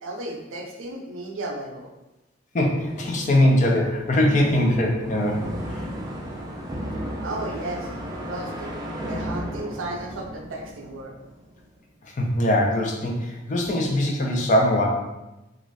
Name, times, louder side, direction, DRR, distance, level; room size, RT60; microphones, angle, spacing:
voice 1, 0.0-1.9 7.2-7.9 8.2-11.1, right 2 dB, 85° right, 1 dB, 0.5 m, -34 dB
voice 2, 2.5-5.4 5.7-5.8 12.0-14.9, left 1 dB, 40° left, 0 dB, 0.5 m, -21 dB
sound 1, 2.8-11.6, equal, 20° right, 0.4 m, -34 dB
2.5 x 2.5 x 3.1 m, 0.99 s
head